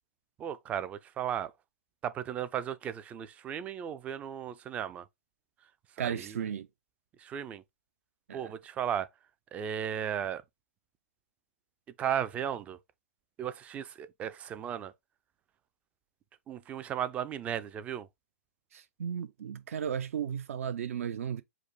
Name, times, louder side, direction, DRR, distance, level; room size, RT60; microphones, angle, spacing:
voice 1, 0.4-1.5 2.0-5.1 6.0-6.5 7.2-7.6 8.3-9.1 9.5-10.4 12.0-12.8 13.4-14.9 16.5-18.1, right 9 dB, 15° right, 0.4 m, -35 dB
voice 2, 6.0-6.7 8.3-8.5 18.7-21.4, right 8 dB, 65° right, 0.6 m, -35 dB
5.0 x 2.1 x 4.8 m
hypercardioid pair, 140°, 8 cm